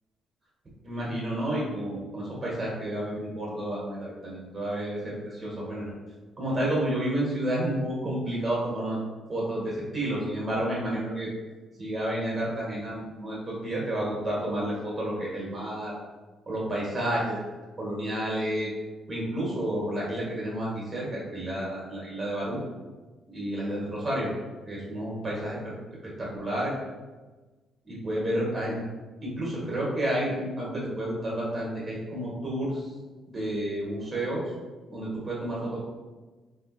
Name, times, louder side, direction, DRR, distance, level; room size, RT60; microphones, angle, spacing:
voice 1, 0.8-5.9 6.4-9.0 9.3-11.3 11.8-15.9 16.5-17.4 17.8-18.7 19.1-22.6 23.3-24.3 24.6-25.7 26.2-26.7 27.8-28.8 29.2-32.9 33.3-34.4 34.9-35.8, right 1 dB, 35° right, -5 dB, 1.3 m, -30 dB
3.3 x 2.9 x 3.0 m, 1.3 s
cardioid pair, 90°, 0 cm